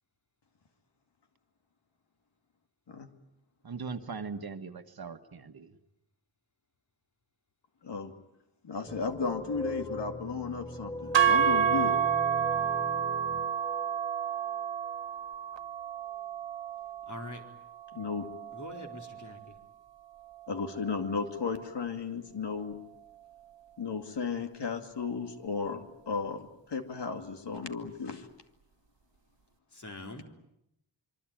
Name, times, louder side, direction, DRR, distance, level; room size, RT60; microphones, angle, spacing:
voice 1, 3.6-5.7, right 5 dB, 50° right, 8 dB, 1.6 m, -40 dB
voice 2, 8.6-12.0 17.9-18.3 20.5-22.8 23.8-28.3, left 5 dB, 60° left, 6 dB, 2.5 m, -34 dB
sound 1, 8.9-15.0, left 1 dB, 10° left, 1.2 m, -40 dB
sound 2, 11.1-19.4, right 8 dB, 70° right, 1.5 m, -30 dB
voice 3, 17.1-17.4 18.5-19.6 29.7-30.2, left 2 dB, 40° left, 3 dB, 4.4 m, -43 dB
25.5 x 24.0 x 9.0 m, 0.81 s
wide cardioid pair, 135°, 46 cm